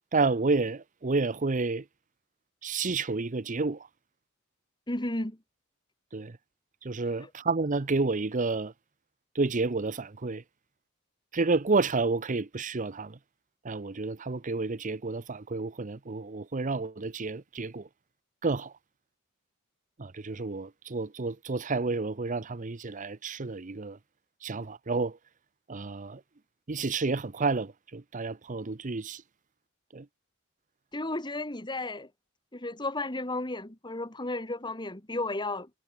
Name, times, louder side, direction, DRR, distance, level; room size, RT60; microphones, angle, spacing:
voice 1, 0.1-1.8 2.6-3.9 6.1-6.4 6.8-8.7 9.3-10.4 11.3-13.2 13.6-17.9 18.4-18.7 20.0-24.0 24.4-25.2 25.7-26.2 26.7-29.2 29.9-30.1, right 3 dB, 40° right, 0.8 m, -30 dB
voice 2, 4.9-5.4 30.9-32.1 32.5-35.7, left 2 dB, 20° left, 2.5 m, -33 dB
head